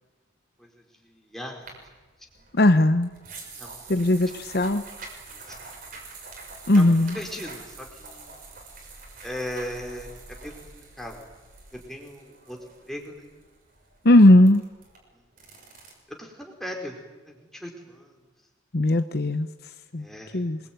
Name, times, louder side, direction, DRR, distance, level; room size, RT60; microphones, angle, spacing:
voice 1, 1.3-1.6 3.6-3.8 6.7-8.3 9.2-10.5 11.0-11.2 11.9-12.6 12.9-13.3 16.2-17.0 17.6-18.1 20.0-20.4, equal, ahead, 1 dB, 4.5 m, -37 dB
sound 1, 1.6-15.9, right 3 dB, 45° right, 6.4 m, -45 dB
voice 2, 2.5-3.1 3.9-4.8 6.7-7.2 14.0-14.6 18.7-19.5 19.9-20.1 20.3-20.6, left 1 dB, 55° left, 10 dB, 0.9 m, -18 dB
27.0 x 21.5 x 9.4 m, 1.2 s
head